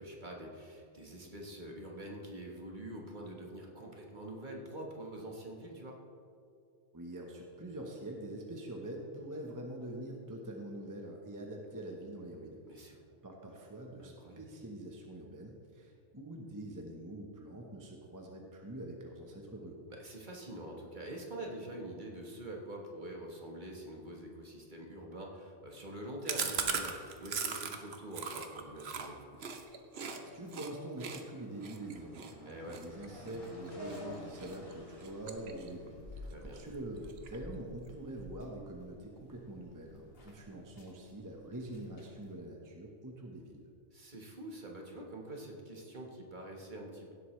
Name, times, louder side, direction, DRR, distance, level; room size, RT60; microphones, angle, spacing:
voice 1, 0.0-6.0 12.7-12.9 14.0-14.4 19.9-29.2 32.4-32.8 36.2-36.6 43.9-47.1, right 1 dB, 40° right, 0 dB, 1.5 m, -45 dB
voice 2, 6.9-12.6 12.9-13.0 13.2-19.8 30.1-43.7, right 1 dB, 15° right, 0 dB, 1.0 m, -45 dB
Chewing mastication, 26.3-30.2 30.5-30.7 31.0-34.0 34.4-34.7 35.0-35.9 36.2-36.3 36.6-36.7 37.0-37.5, right 6 dB, 60° right, 1.0 m, -39 dB
sound 1, 30.0-37.0, equal, 70° left, 3.0 m, -54 dB
sound 2, 32.8-42.4, left 1 dB, 50° left, 1.7 m, -52 dB
16.5 x 8.0 x 3.2 m, 2.4 s
omnidirectional pair, 1.3 m